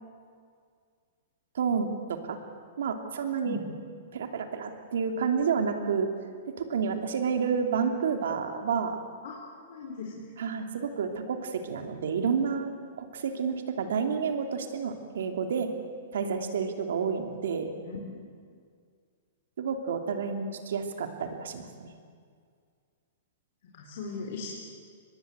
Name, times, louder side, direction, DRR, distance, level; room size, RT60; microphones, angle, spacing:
voice 1, 1.5-2.4 2.8-3.6 4.1-6.1 6.6-9.0 10.4-12.7 13.0-15.7 16.1-17.7 19.6-21.9, right 6 dB, 80° right, 5 dB, 3.0 m, -30 dB
voice 2, 9.7-10.2 17.9-18.3 23.7-24.5, left 4 dB, 60° left, -2 dB, 4.5 m, -38 dB
24.5 x 21.0 x 8.2 m, 2.1 s
hypercardioid pair, 150°, 0 cm